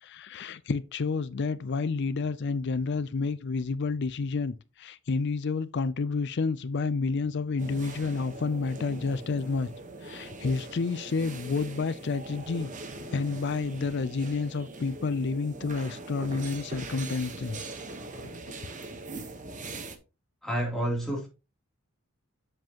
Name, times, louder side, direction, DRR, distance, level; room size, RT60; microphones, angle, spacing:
voice 1, 0.0-9.7 10.0-12.7 13.1-17.7 18.2-18.6, left 4 dB, 50° left, 0.5 m, -30 dB
sound 1, 7.6-20.0, right 2 dB, 35° right, 1.1 m, -41 dB
voice 2, 20.4-21.3, right 1 dB, ahead, 2.9 m, -29 dB
7.6 x 7.5 x 2.9 m
head